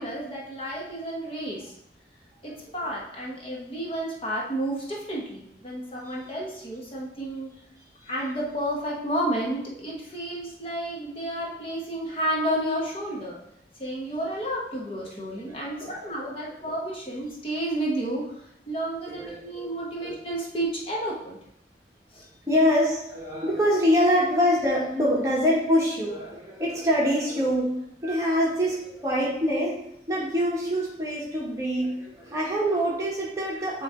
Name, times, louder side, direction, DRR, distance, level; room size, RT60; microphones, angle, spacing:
voice 1, 0.0-1.7 2.4-7.5 8.0-13.4 13.8-21.4 22.1-22.2, right 1 dB, 30° left, -3 dB, 1.1 m, -31 dB
voice 2, 15.8-16.3 16.6-16.7 19.1-19.7 20.0-20.2 22.5-27.7 28.0-29.7 30.1-33.8, equal, 15° right, -4 dB, 1.3 m, -25 dB
8.8 x 3.2 x 3.7 m, 0.76 s
head